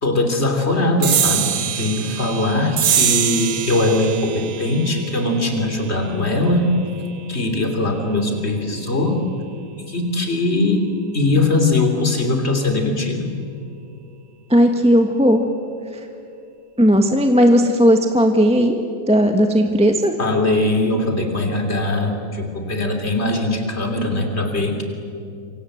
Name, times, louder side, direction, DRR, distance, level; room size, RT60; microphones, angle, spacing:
voice 1, 0.0-6.7 7.3-9.2 9.9-10.9 11.1-13.3 20.2-24.8, left 2 dB, 35° left, 5 dB, 3.4 m, -20 dB
sound 1, 1.0-7.9, right 10 dB, 60° right, 1.2 m, -25 dB
voice 2, 14.5-15.4 16.8-18.8 19.1-20.1, equal, 5° right, 4 dB, 1.3 m, -15 dB
27.0 x 25.5 x 8.0 m, 2.6 s
omnidirectional pair, 2.0 m